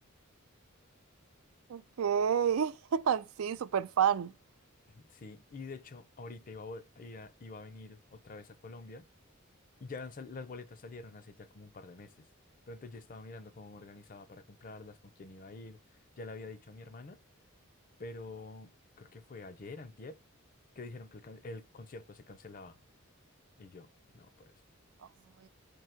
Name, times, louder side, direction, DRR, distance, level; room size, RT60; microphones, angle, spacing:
voice 1, 1.7-4.3, right 8 dB, 85° right, 0.4 m, -29 dB
voice 2, 4.9-9.1 9.8-12.3 12.7-17.2 18.0-20.2 20.8-22.8 23.6-23.9 24.1-24.5, left 3 dB, 40° left, 0.5 m, -47 dB
4.5 x 2.7 x 4.3 m
head